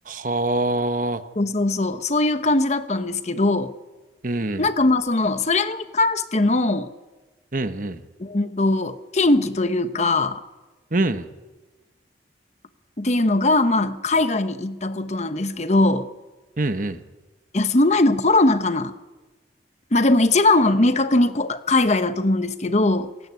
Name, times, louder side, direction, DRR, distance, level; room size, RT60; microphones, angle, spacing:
voice 1, 0.1-1.2 4.2-4.7 7.5-8.0 10.9-11.3 16.6-17.0, right 2 dB, 45° right, 10 dB, 1.2 m, -24 dB
voice 2, 1.4-3.8 4.6-6.9 8.2-10.4 13.0-16.1 17.5-18.9 19.9-23.1, left 2 dB, 40° left, 11 dB, 1.0 m, -20 dB
26.5 x 17.0 x 9.7 m, 1.2 s
head